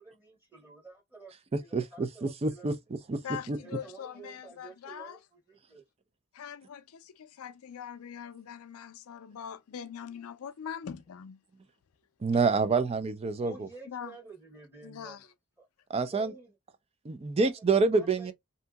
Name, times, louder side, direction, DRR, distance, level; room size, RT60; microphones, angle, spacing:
voice 1, 0.0-1.3 1.6-2.7 3.6-5.8 13.4-15.2 15.6-15.7 16.1-16.5 17.4-17.5 17.9-18.3, right 3 dB, 10° right, 1.1 m, -50 dB
voice 2, 1.5-2.8 3.1-3.6 12.2-13.7 15.9-16.3 17.0-18.3, right 4 dB, 30° right, 0.4 m, -27 dB
voice 3, 3.2-5.2 6.3-11.4 13.9-14.2 14.8-15.3, left 8 dB, 85° left, 0.4 m, -42 dB
2.8 x 2.6 x 2.2 m
head